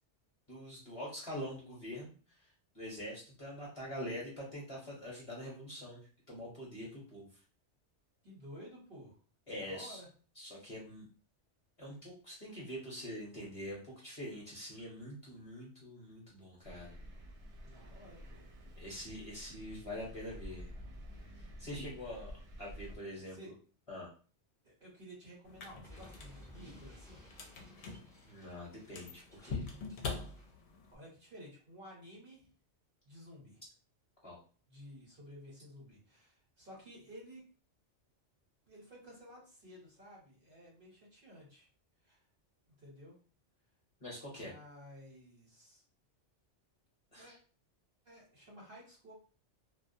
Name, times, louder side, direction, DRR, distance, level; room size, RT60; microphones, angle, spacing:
voice 1, 0.5-2.1 2.7-6.0 6.3-7.3 9.5-10.0 10.4-11.1 11.8-17.0 18.8-20.7 21.6-23.5 23.9-24.1 28.2-29.7 34.2-34.4 44.0-44.5 47.1-47.3, equal, 30° left, -5 dB, 0.9 m, -44 dB
voice 2, 8.2-9.1 9.6-10.1 17.6-18.4 23.1-23.5 24.6-27.2 30.9-32.5 33.0-33.6 34.7-37.4 38.7-41.7 42.0-42.2 42.7-43.1 44.3-45.8 47.1-47.3 48.0-49.1, equal, 50° right, -4 dB, 1.0 m, -53 dB
Thunder, 16.6-23.0, equal, 75° right, 0.9 m, -50 dB
sound 1, 25.4-31.0, left 4 dB, 70° left, 0.8 m, -45 dB
Explosion, 25.8-30.6, left 1 dB, 5° left, 0.6 m, -58 dB
2.3 x 2.2 x 2.6 m, 0.39 s
omnidirectional pair, 1.2 m